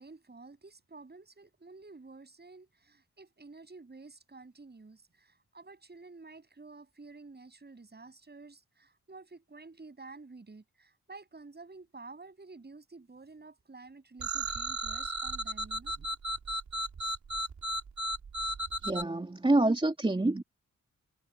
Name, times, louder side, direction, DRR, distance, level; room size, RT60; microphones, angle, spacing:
voice 1, 0.0-16.1, right 3 dB, 35° right, 7.8 m, -51 dB
sound 1, 14.2-19.0, right 2 dB, 65° right, 5.0 m, -34 dB
voice 2, 18.8-20.4, right 2 dB, 15° right, 3.0 m, -27 dB
wide cardioid pair, 115°, 31 cm